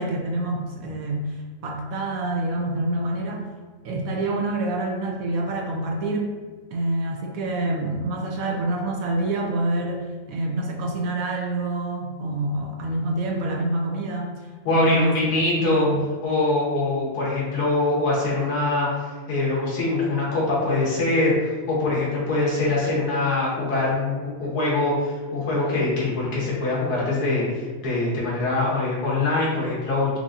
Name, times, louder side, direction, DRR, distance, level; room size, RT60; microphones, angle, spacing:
voice 1, 0.0-3.4 3.8-6.3 6.7-14.3 14.7-16.1, right 2 dB, 70° right, 1 dB, 1.0 m, -27 dB
voice 2, 14.6-15.9 16.2-30.2, left 2 dB, 80° left, -5 dB, 1.6 m, -23 dB
4.6 x 2.6 x 2.5 m, 1.4 s
omnidirectional pair, 1.6 m